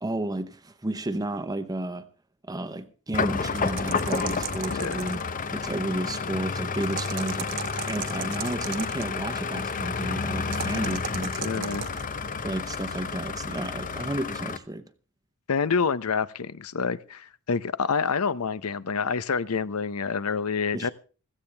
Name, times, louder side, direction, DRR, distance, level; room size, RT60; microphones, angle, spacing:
voice 1, 0.0-2.0 2.5-5.2 5.5-7.6 7.9-11.8 12.4-14.8 20.7-20.9, right 1 dB, 15° right, 0.8 m, -32 dB
sound 1, 3.1-14.6, left 5 dB, 35° left, 0.7 m, -30 dB
sound 2, 3.4-5.3 6.8-9.1 10.5-12.1, right 8 dB, 60° right, 1.2 m, -36 dB
voice 2, 11.4-11.9 15.5-20.9, left 5 dB, 75° left, 0.7 m, -27 dB
16.0 x 15.0 x 3.4 m
head